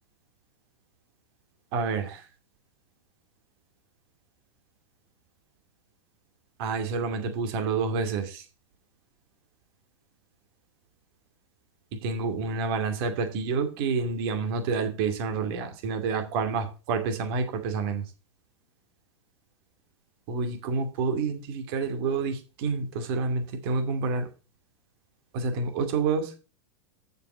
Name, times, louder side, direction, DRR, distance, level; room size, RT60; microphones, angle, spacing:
voice 1, 1.7-2.3 6.6-8.4 11.9-18.0 20.3-24.3 25.3-26.3, right 4 dB, 55° right, 6 dB, 2.5 m, -28 dB
7.8 x 6.7 x 6.2 m, 0.34 s
hypercardioid pair, 110°, 15 cm